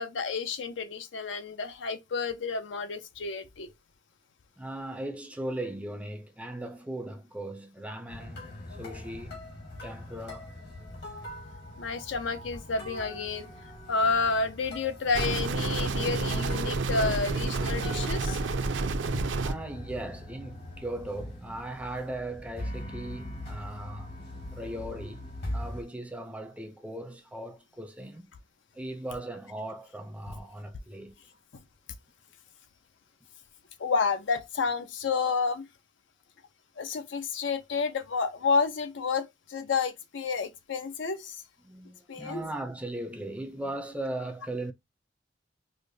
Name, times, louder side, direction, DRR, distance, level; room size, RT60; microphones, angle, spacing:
voice 1, 0.0-3.7 11.8-13.5 13.9-18.4 33.8-35.7 36.8-41.4 42.1-42.4, left 4 dB, 75° left, 0.5 m, -30 dB
voice 2, 4.6-9.5 9.8-10.5 19.4-24.1 24.5-28.3 28.7-31.2 41.6-44.7, right 1 dB, 5° right, 0.5 m, -38 dB
sound 1, 8.1-25.8, left 1 dB, 60° left, 1.7 m, -42 dB
sound 2, 15.1-19.5, right 3 dB, 70° right, 0.5 m, -29 dB
4.8 x 2.1 x 2.6 m
head